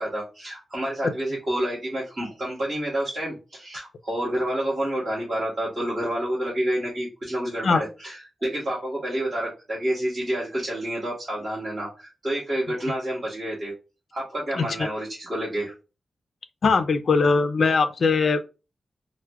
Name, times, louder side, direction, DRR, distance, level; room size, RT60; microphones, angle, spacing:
voice 1, 0.0-13.7 14.1-15.7, right 1 dB, 30° right, 1.2 m, -29 dB
voice 2, 16.6-18.5, left 4 dB, 60° left, 0.3 m, -20 dB
4.5 x 2.1 x 2.2 m
wide cardioid pair, 135°, 0 cm